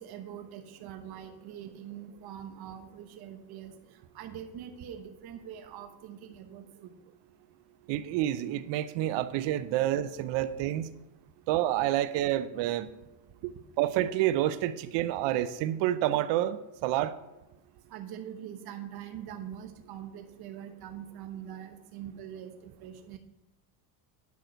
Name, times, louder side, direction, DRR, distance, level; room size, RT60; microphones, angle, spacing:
voice 1, 0.0-3.7 4.1-6.9 17.9-23.2, right 9 dB, 55° right, 6 dB, 1.1 m, -43 dB
voice 2, 7.9-10.9 11.5-12.9 13.4-17.1, right 13 dB, 70° right, 13 dB, 0.7 m, -28 dB
9.5 x 5.9 x 5.1 m, 1.0 s
cardioid pair, 110°, 44 cm